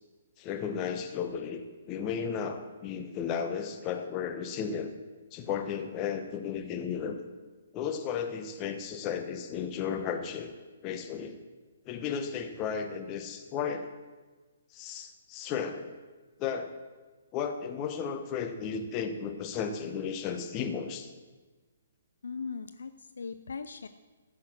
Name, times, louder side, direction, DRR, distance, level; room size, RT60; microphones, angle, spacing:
voice 1, 0.4-4.9 5.3-7.2 7.7-10.5 10.8-11.4 11.9-13.9 14.7-15.9 16.4-16.7 17.3-21.1, left 7 dB, 25° left, 6 dB, 1.1 m, -34 dB
voice 2, 22.2-23.9, left 5 dB, 60° left, 11 dB, 0.5 m, -39 dB
14.5 x 6.2 x 6.3 m, 1.3 s
figure-of-eight pair, 125°, 0 cm